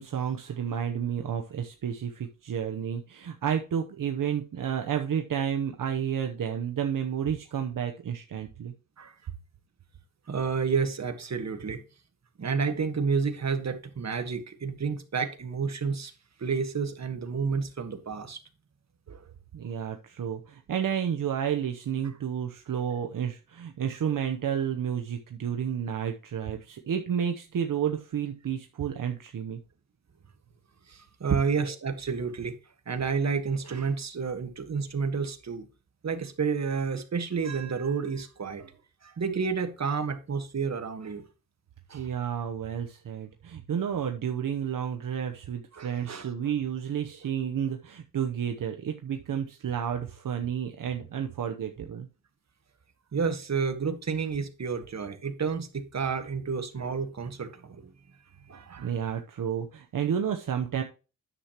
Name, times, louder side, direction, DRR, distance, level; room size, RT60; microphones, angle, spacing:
voice 1, 0.0-8.7 19.5-29.6 41.9-52.1 58.8-60.8, right 8 dB, 70° right, 4 dB, 0.9 m, -31 dB
voice 2, 10.3-11.8 12.4-16.1 16.4-18.4 19.1-19.2 30.9-32.5 32.9-35.7 36.0-38.7 39.0-41.2 41.9-42.1 45.7-46.3 53.1-57.9 58.5-58.9, right 5 dB, 50° right, 8 dB, 1.5 m, -30 dB
9.8 x 7.4 x 3.0 m, 0.33 s
cardioid pair, 60°, 34 cm